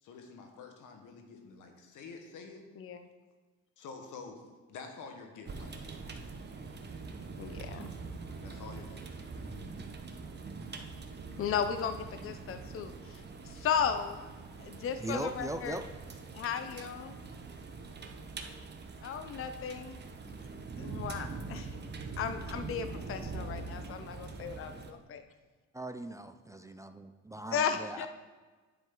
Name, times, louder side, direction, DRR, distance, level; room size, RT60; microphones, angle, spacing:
voice 1, 0.0-2.7 3.8-4.4 4.7-6.0 8.4-9.5 20.9-21.0, left 4 dB, 85° left, 4 dB, 1.4 m, -48 dB
voice 2, 2.8-3.1 7.4-7.9 11.4-14.2 14.6-15.8 16.3-17.2 19.0-20.4 20.8-21.8 22.2-25.2 27.5-28.1, left 7 dB, 45° left, 8 dB, 0.6 m, -35 dB
sound 1, 5.4-24.9, right 4 dB, 35° right, 0.9 m, -43 dB
voice 3, 15.0-15.8 25.7-28.1, right 1 dB, 10° right, 8 dB, 0.4 m, -39 dB
9.6 x 7.4 x 3.8 m, 1.3 s
cardioid pair, 90°, 30 cm